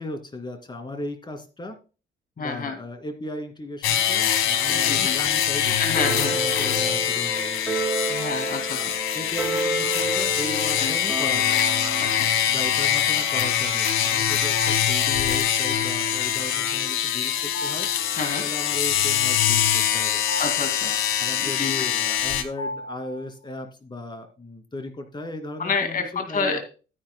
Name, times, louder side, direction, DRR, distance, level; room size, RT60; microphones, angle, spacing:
voice 1, 0.0-1.8 2.4-7.8 8.7-11.7 12.5-17.9 18.3-20.2 20.8-26.6, left 1 dB, 20° left, 6 dB, 2.5 m, -36 dB
voice 2, 2.4-2.8 4.8-5.2 5.8-6.4 8.1-8.9 10.8-11.0 12.0-12.3 18.2-18.4 20.4-20.9 21.4-21.9 25.6-26.6, left 4 dB, 45° left, 7 dB, 2.1 m, -28 dB
sound 1, 3.8-22.4, left 9 dB, 90° left, 1.3 m, -24 dB
sound 2, 4.7-5.3 5.9-12.2, right 3 dB, 10° right, 6.3 m, -31 dB
sound 3, 8.2-8.9 11.5-12.2 14.4-15.2 15.5-15.6 17.1-18.6 19.6-23.5, left 1 dB, 70° left, 5.6 m, -37 dB
12.5 x 10.0 x 2.2 m, 0.34 s
cardioid pair, 90°, 20 cm